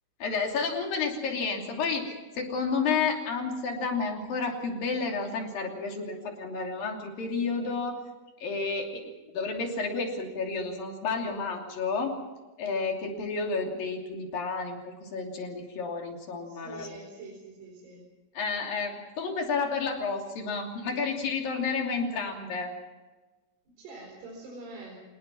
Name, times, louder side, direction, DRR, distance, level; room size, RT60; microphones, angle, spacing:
voice 1, 0.2-2.1 2.4-8.0 8.4-12.2 12.6-17.0 18.3-22.7, left 4 dB, 65° left, 2 dB, 4.6 m, -31 dB
voice 2, 16.5-18.1 23.7-25.0, right 2 dB, 90° right, -1 dB, 6.5 m, -45 dB
25.5 x 19.5 x 5.9 m, 1.2 s
omnidirectional pair, 4.6 m